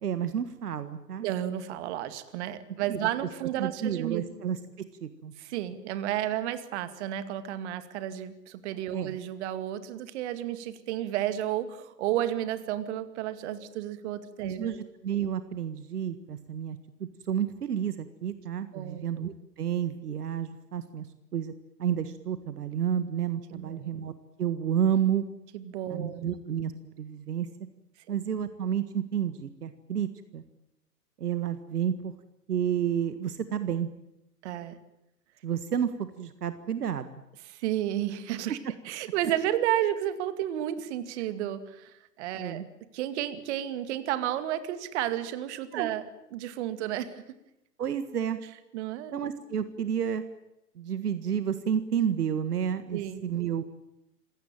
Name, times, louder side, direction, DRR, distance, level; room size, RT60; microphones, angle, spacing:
voice 1, 0.0-1.3 2.9-3.0 3.6-5.3 8.9-9.2 14.4-21.1 21.3-21.5 21.8-24.1 24.4-25.3 25.9-27.5 28.1-30.4 31.2-32.1 32.5-33.9 35.4-37.1 42.4-42.7 45.7-45.9 47.8-48.4 49.1-50.2 50.8-53.6, right 9 dB, 70° right, 11 dB, 1.7 m, -30 dB
voice 2, 1.2-4.3 5.4-14.8 18.7-19.1 23.5-23.8 25.5-26.3 34.4-34.8 37.5-38.6 38.8-42.6 42.9-46.0 46.3-47.2 48.7-49.1 52.9-53.2, right 12 dB, 45° right, 12 dB, 2.3 m, -32 dB
27.0 x 17.0 x 9.1 m, 0.88 s
figure-of-eight pair, 115°, 49 cm